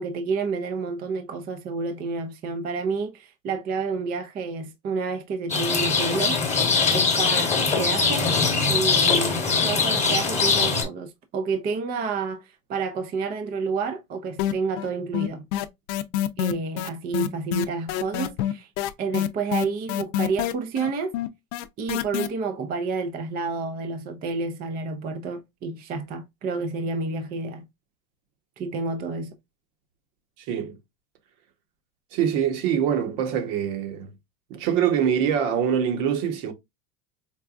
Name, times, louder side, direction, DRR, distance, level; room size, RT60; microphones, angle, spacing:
voice 1, 0.0-6.4 6.9-8.3 8.6-15.4 16.4-18.7 19.0-21.2 21.8-27.7 28.6-29.3, right 4 dB, 25° right, 0.4 m, -29 dB
Rain, 5.5-10.8, left 4 dB, 15° left, 1.1 m, -22 dB
sound 1, 14.4-14.9 15.1-22.3, left 12 dB, 60° left, 0.5 m, -26 dB
voice 2, 30.5-30.8 32.1-34.1 34.5-36.5, right 8 dB, 60° right, 1.2 m, -24 dB
4.5 x 2.2 x 2.4 m
supercardioid pair, 125°, 42 cm